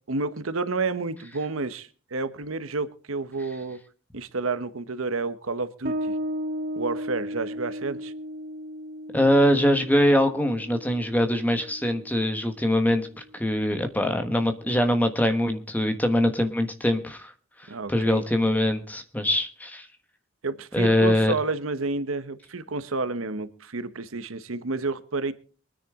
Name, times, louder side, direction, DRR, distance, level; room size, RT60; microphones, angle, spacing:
voice 1, 0.1-3.8 4.1-6.1 6.8-8.1 17.7-18.2 20.4-25.3, right 3 dB, 85° right, 13 dB, 1.0 m, -30 dB
Bass guitar, 5.8-13.0, equal, 45° right, 1.8 m, -35 dB
voice 2, 9.1-13.1 13.3-17.3 17.6-19.9 20.7-21.3, left 1 dB, 10° left, 6 dB, 1.2 m, -23 dB
23.0 x 10.0 x 3.7 m, 0.38 s
head